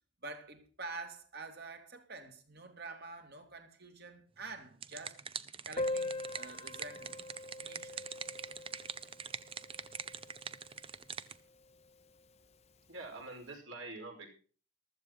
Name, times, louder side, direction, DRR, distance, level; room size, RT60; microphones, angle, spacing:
voice 1, 0.2-5.2 5.7-7.2 7.6-8.0, right 3 dB, 50° right, 2.6 m, -47 dB
sound 1, 4.5-11.4, right 6 dB, 25° right, 0.6 m, -44 dB
Piano, 5.8-11.1 11.4-11.5 11.7-11.9 12.2-12.3 13.0-13.2, left 2 dB, 30° left, 0.7 m, -42 dB
voice 2, 12.9-14.3, right 2 dB, 65° right, 5.4 m, -45 dB
15.0 x 13.0 x 4.0 m
head